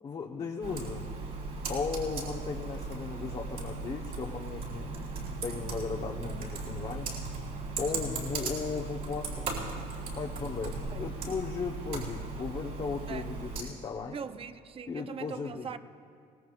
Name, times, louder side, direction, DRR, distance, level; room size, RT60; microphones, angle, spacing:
voice 1, 0.0-1.1 1.7-4.9 5.4-7.2 7.8-9.5 10.2-14.2 14.9-15.7, left 5 dB, 35° left, -1 dB, 1.0 m, -36 dB
Computer keyboard, 0.6-13.6, right 3 dB, 60° right, 4.3 m, -37 dB
voice 2, 14.1-15.8, right 6 dB, 35° right, 12 dB, 0.6 m, -41 dB
23.5 x 18.5 x 2.5 m, 2.3 s
cardioid pair, 110°, 17 cm